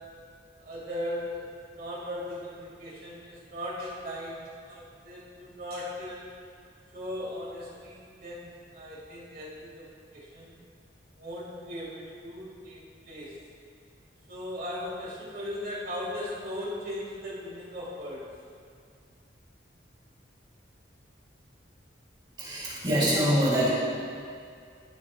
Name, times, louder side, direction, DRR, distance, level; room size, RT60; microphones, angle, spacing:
voice 1, 0.6-1.5 1.7-6.3 6.9-10.5 11.2-13.4 14.3-18.3, left 1 dB, 50° right, -5 dB, 2.2 m, -38 dB
voice 2, 22.4-23.7, equal, 25° right, -7 dB, 2.3 m, -24 dB
15.0 x 7.4 x 2.4 m, 2.3 s
head